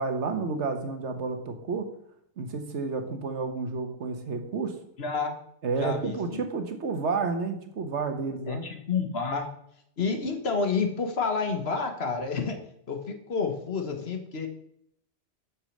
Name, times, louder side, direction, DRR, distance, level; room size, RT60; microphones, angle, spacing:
voice 1, 0.0-1.9 2.4-4.7 5.6-8.6, right 4 dB, 70° right, 6 dB, 1.4 m, -30 dB
voice 2, 5.0-5.3 5.8-6.4 8.5-9.5 10.0-12.6 12.9-14.5, left 5 dB, 60° left, 6 dB, 1.4 m, -29 dB
6.3 x 6.2 x 6.4 m, 0.71 s
omnidirectional pair, 1.2 m